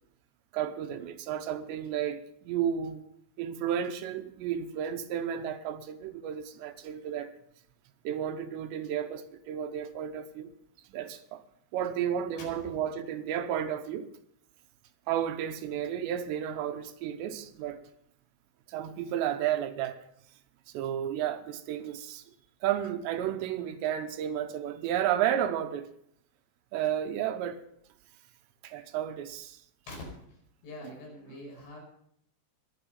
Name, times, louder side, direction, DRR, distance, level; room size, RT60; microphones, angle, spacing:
voice 1, 0.5-3.0 3.4-7.3 8.0-10.5 10.9-11.4 11.7-14.1 15.1-17.8 18.7-20.0 20.7-22.2 22.6-25.9 26.7-27.6 28.6-29.6 30.8-31.0, right 10 dB, 85° right, 3.0 m, -32 dB
voice 2, 12.4-12.8 29.9-30.0 30.6-31.8, left 2 dB, 90° left, 7.4 m, -44 dB
21.5 x 7.9 x 5.4 m
omnidirectional pair, 5.2 m